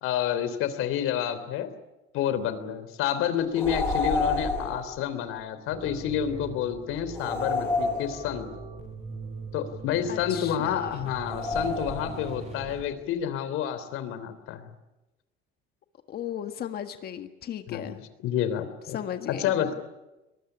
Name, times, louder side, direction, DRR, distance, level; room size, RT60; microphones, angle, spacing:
voice 1, 0.0-1.7 2.1-8.5 9.5-14.6 17.7-17.9 18.2-19.0 19.3-19.7, left 9 dB, 80° left, 11 dB, 3.4 m, -29 dB
sound 1, 3.5-4.9 7.1-8.6 11.3-12.4, left 3 dB, 10° left, 7.5 m, -29 dB
sound 2, 5.7-12.8, right 4 dB, 30° right, 6.9 m, -41 dB
voice 2, 10.1-11.1 16.1-18.0 18.9-19.5, left 10 dB, 50° left, 8 dB, 1.7 m, -36 dB
23.0 x 20.5 x 10.0 m, 1.0 s
cardioid pair, 160°, 21 cm